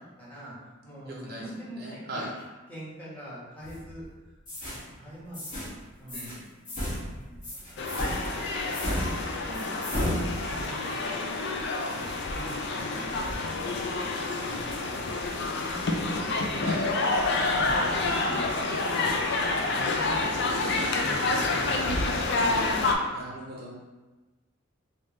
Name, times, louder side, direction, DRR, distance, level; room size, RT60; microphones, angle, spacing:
voice 1, 0.2-0.5 0.8-2.3 2.7-4.0 4.6-6.3 6.8-7.9 8.6-11.2 11.7-16.7 17.5-19.2 19.6-21.0 21.3-22.0 22.3-22.7 23.1-23.5, equal, 10° left, -9 dB, 1.1 m, -45 dB
voice 2, 1.0-1.4 1.7-2.3 6.1-6.5 14.3-15.0 16.6-16.9 17.4-18.0 21.0-21.5 23.1-23.7, right 1 dB, 45° right, -3 dB, 0.6 m, -40 dB
sound 1, 3.6-4.0 4.5-4.8 5.3-5.7 6.1-6.4 6.6-10.8, equal, 35° left, 1.2 m, -33 dB
sound 2, 7.8-22.9, left 3 dB, 55° left, 0.4 m, -28 dB
3.3 x 2.8 x 3.1 m, 1.2 s
head